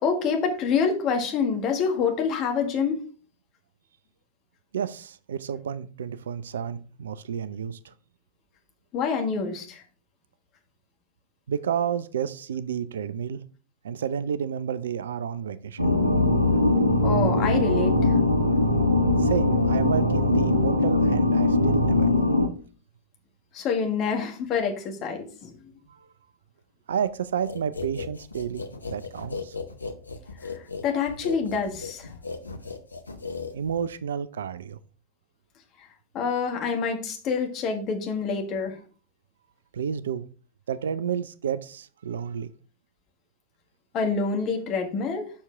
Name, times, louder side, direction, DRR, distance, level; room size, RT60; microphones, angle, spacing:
voice 1, 0.0-3.0 8.9-9.8 17.0-18.2 23.5-25.5 30.4-32.1 36.1-38.7 43.9-45.3, left 5 dB, 35° left, 3 dB, 1.8 m, -27 dB
voice 2, 4.7-7.9 11.5-13.4 13.8-15.9 19.2-22.3 25.9-26.0 26.9-28.6 28.9-29.5 33.5-34.8 39.7-40.3 40.7-42.5, right 8 dB, 65° right, 15 dB, 0.4 m, -30 dB
sound 1, 15.8-22.5, left 2 dB, 85° right, 1.3 m, -21 dB
sound 2, 27.5-34.0, left 4 dB, 80° left, 0.9 m, -37 dB
7.1 x 6.2 x 3.4 m, 0.39 s
figure-of-eight pair, 90°, 0 cm